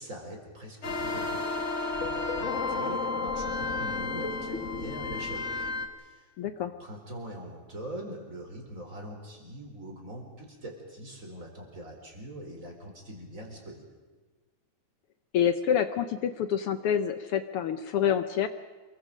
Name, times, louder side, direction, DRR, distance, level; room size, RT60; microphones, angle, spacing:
voice 1, 0.0-1.5 1.7-5.6 6.0-6.3 6.6-13.8, right 1 dB, 25° right, 1 dB, 4.4 m, -43 dB
sound 1, 0.8-5.9, left 3 dB, 35° left, 1.4 m, -32 dB
voice 2, 6.4-6.7 15.3-18.5, left 9 dB, 75° left, 10 dB, 1.3 m, -27 dB
28.5 x 23.0 x 5.1 m, 1.3 s
omnidirectional pair, 3.4 m